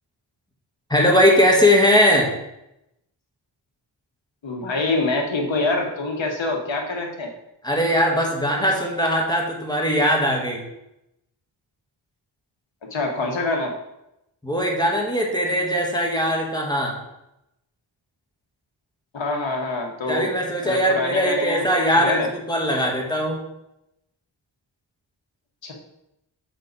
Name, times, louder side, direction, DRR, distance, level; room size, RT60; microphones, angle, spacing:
voice 1, 0.9-2.3 7.6-10.6 14.4-17.0 20.1-23.4, equal, 10° left, -1 dB, 1.4 m, -20 dB
voice 2, 4.4-7.3 12.9-13.7 19.1-20.3 20.6-21.7 21.9-22.3 25.6-25.7, left 2 dB, 70° left, 2 dB, 1.5 m, -25 dB
6.5 x 5.7 x 4.0 m, 0.86 s
wide cardioid pair, 95°, 46 cm